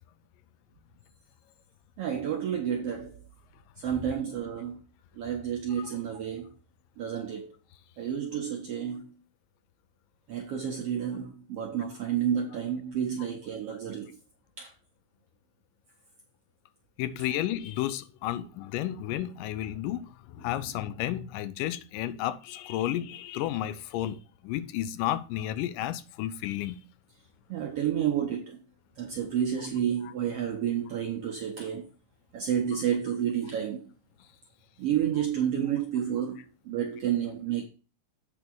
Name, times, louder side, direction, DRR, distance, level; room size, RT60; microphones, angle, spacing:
voice 1, 2.0-3.2 3.8-4.8 5.2-6.5 7.0-7.5 8.0-9.1 10.3-14.2 14.6-14.7 27.5-28.6 29.0-31.9 32.3-33.9 34.8-37.7, right 9 dB, 75° right, 1.4 m, -30 dB
voice 2, 17.0-26.8 30.0-30.1 32.7-32.8, left 13 dB, 85° left, 2.2 m, -32 dB
8.5 x 3.6 x 6.1 m
omnidirectional pair, 3.8 m